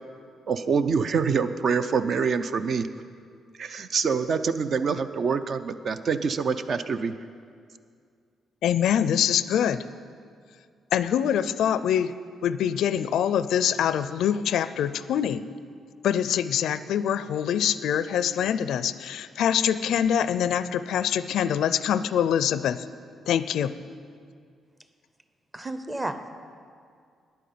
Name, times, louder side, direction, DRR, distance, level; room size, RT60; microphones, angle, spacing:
voice 1, 0.5-2.9 3.6-7.2, right 5 dB, 45° right, 11 dB, 0.5 m, -25 dB
voice 2, 8.6-9.8 10.9-12.1 12.4-15.4 16.0-22.8 23.3-23.7, left 9 dB, 75° left, 14 dB, 0.4 m, -24 dB
voice 3, 25.5-26.3, right 1 dB, 10° right, 9 dB, 0.7 m, -32 dB
10.0 x 9.2 x 8.6 m, 2.2 s
cardioid pair, 145°, 0 cm